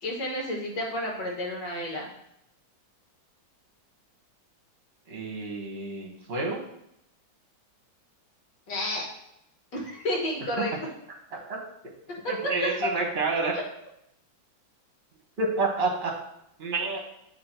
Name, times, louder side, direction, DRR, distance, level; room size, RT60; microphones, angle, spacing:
voice 1, 0.0-2.1 8.7-9.0 9.7-10.7 12.4-12.5, left 1 dB, 65° left, -1 dB, 2.0 m, -31 dB
voice 2, 5.1-6.6 11.3-11.6 12.3-13.5 15.4-16.1 16.6-17.0, right 3 dB, 35° right, 0 dB, 1.4 m, -29 dB
7.8 x 3.5 x 4.4 m, 0.78 s
omnidirectional pair, 2.1 m